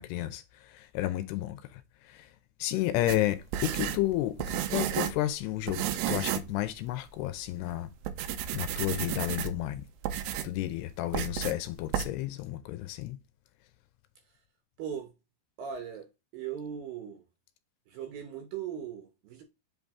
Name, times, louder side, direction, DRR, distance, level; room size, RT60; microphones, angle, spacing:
voice 1, 0.0-2.3 2.6-7.9 8.5-9.8 10.4-13.2, left 15 dB, 80° left, 2.5 m, -32 dB
sound 1, 3.1-5.3 5.7-6.5 6.9-7.0 7.6-7.7 8.0-9.7 10.0-10.6 11.1-11.6 11.9-12.1, right 10 dB, 90° right, 2.8 m, -32 dB
voice 2, 14.8-15.1 15.6-16.1 16.3-17.2 17.9-19.4, right 8 dB, 75° right, 2.3 m, -38 dB
7.9 x 3.9 x 3.6 m
omnidirectional pair, 5.0 m